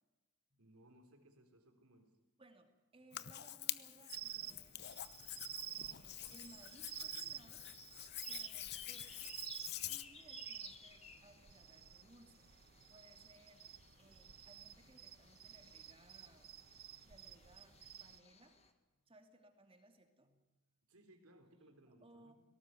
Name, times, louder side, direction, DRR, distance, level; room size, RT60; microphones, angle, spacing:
voice 1, 0.6-2.2 20.9-22.3, right 1 dB, 75° right, 5 dB, 3.7 m, -64 dB
voice 2, 2.4-4.9 5.4-7.6 8.2-9.3 9.9-12.4 12.9-13.7 14.0-16.5 17.0-18.6 18.9-20.5 21.9-22.3, right 1 dB, 25° right, 5 dB, 2.6 m, -64 dB
Hands, 3.1-10.0, left 13 dB, 50° left, 0.8 m, -47 dB
sound 1, 4.1-18.2, right 12 dB, 45° right, 0.6 m, -51 dB
sound 2, 5.1-18.7, left 5 dB, 30° left, 1.7 m, -60 dB
18.5 x 18.0 x 9.3 m, 1.2 s
head